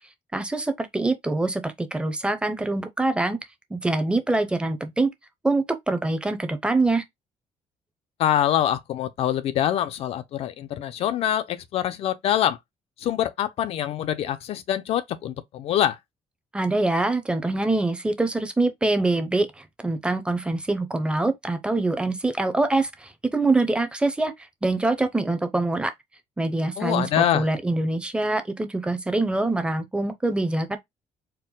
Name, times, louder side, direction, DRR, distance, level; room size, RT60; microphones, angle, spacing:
voice 1, 0.3-3.4 3.7-5.1 5.4-7.0 16.5-24.3 24.6-25.9 26.4-30.8, right 2 dB, 10° right, 0.7 m, -24 dB
voice 2, 8.2-12.6 13.0-16.0 26.8-27.5, left 11 dB, 65° left, 0.5 m, -24 dB
4.4 x 2.1 x 3.8 m
cardioid pair, 135°, 11 cm